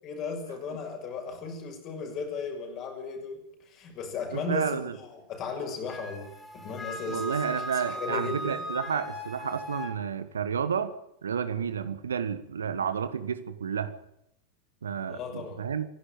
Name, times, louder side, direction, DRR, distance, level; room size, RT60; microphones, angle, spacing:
voice 1, 0.0-8.6 15.1-15.6, left 4 dB, 35° left, 4 dB, 6.4 m, -36 dB
voice 2, 4.3-5.0 7.1-10.9 11.2-13.9 14.8-15.9, right 7 dB, 70° right, 13 dB, 1.5 m, -31 dB
Wind instrument woodwind instrument, 5.9-10.0, equal, 15° left, 5.4 m, -38 dB
26.0 x 11.5 x 9.1 m, 0.82 s
figure-of-eight pair, 90°, 0 cm